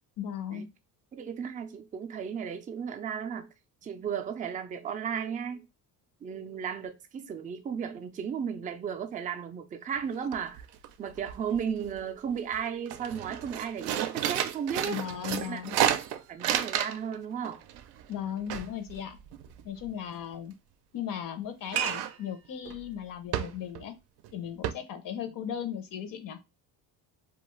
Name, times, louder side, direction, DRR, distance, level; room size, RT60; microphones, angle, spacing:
voice 1, 0.2-0.7 14.8-15.8 18.1-19.2 19.6-20.5 20.9-23.9 24.3-26.4, left 9 dB, 55° left, 0.6 m, -36 dB
voice 2, 1.1-3.5 3.8-5.7 6.2-10.7 11.0-15.0 15.4-15.8 16.1-17.6, right 7 dB, 20° right, 0.3 m, -35 dB
sound 1, 10.0-10.1 10.3-10.9 11.1-12.0 12.4-12.5 12.9-17.2 17.4-19.9 21.7-22.2 22.6-22.8 23.3-23.9 24.2-24.3 24.6-24.7, right 11 dB, 75° right, 0.5 m, -31 dB
2.4 x 2.3 x 3.0 m
cardioid pair, 110°, 40 cm